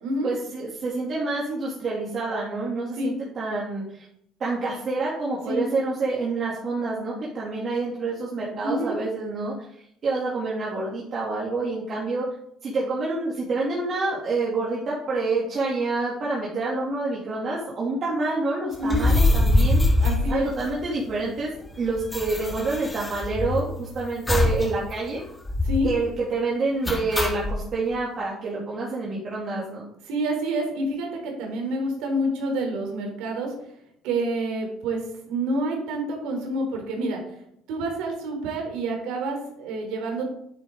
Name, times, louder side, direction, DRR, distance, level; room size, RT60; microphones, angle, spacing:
voice 1, 0.2-4.1 4.4-9.7 10.0-12.3 12.6-19.8 20.3-21.5 21.8-25.2 25.8-29.8, right 3 dB, 45° right, -5 dB, 2.7 m, -27 dB
voice 2, 8.6-9.0 18.8-19.1 20.0-20.5 25.6-25.9 30.1-33.5 34.0-37.2 37.7-40.3, right 1 dB, 80° right, 2 dB, 3.4 m, -28 dB
sound 1, 18.8-21.1 21.4-21.5 21.7-23.8 24.3-24.7 25.0-25.1 25.4-25.9 26.8-27.6, left 2 dB, 20° left, 2.0 m, -23 dB
9.7 x 9.0 x 3.8 m, 0.73 s
supercardioid pair, 95°, 0 cm